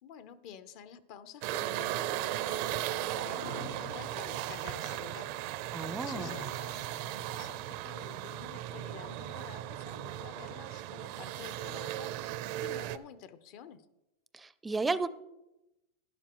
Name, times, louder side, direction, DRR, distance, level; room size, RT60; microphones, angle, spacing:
voice 1, 0.0-5.3 6.0-13.9, left 8 dB, 55° left, 12 dB, 0.8 m, -50 dB
sound 1, 1.4-13.0, right 13 dB, 60° right, 0.5 m, -37 dB
sound 2, 3.4-4.4 5.8-8.2 9.3-10.3, left 1 dB, 85° left, 2.2 m, -46 dB
voice 2, 5.7-6.4 14.3-15.1, right 3 dB, 10° right, 15 dB, 0.5 m, -33 dB
12.0 x 11.0 x 3.0 m, 0.94 s
supercardioid pair, 125°, 0 cm